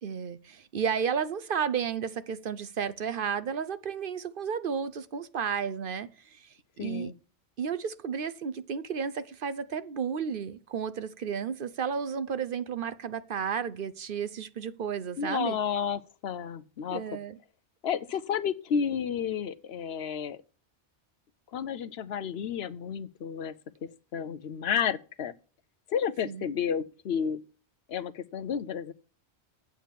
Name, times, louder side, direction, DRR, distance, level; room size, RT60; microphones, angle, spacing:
voice 1, 0.0-6.5 6.8-7.1 7.6-15.6 16.9-17.4 26.3-26.5, right 7 dB, 55° right, 0.8 m, -32 dB
voice 2, 6.8-7.1 15.2-17.0 17.8-20.4 21.5-23.5 24.1-25.3 25.9-27.4 27.9-28.9, left 7 dB, 70° left, 0.9 m, -31 dB
8.6 x 7.1 x 7.4 m
omnidirectional pair, 1.1 m